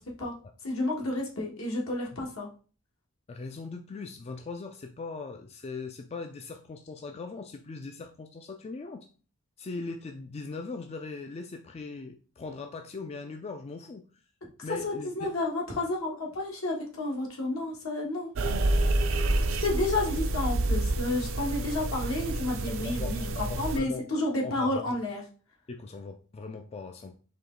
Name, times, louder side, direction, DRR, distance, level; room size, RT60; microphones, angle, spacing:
voice 1, 0.6-2.5 14.8-18.3 19.6-23.2 23.6-25.2, left 2 dB, 75° left, -2 dB, 1.4 m, -31 dB
voice 2, 3.3-9.1 9.6-14.1 14.6-15.3 22.7-24.0 24.3-25.0 25.7-27.2, left 3 dB, 30° left, 6 dB, 0.4 m, -40 dB
sound 1, 18.4-23.8, right 2 dB, 65° right, 0.5 m, -28 dB
4.6 x 3.0 x 3.7 m, 0.38 s
head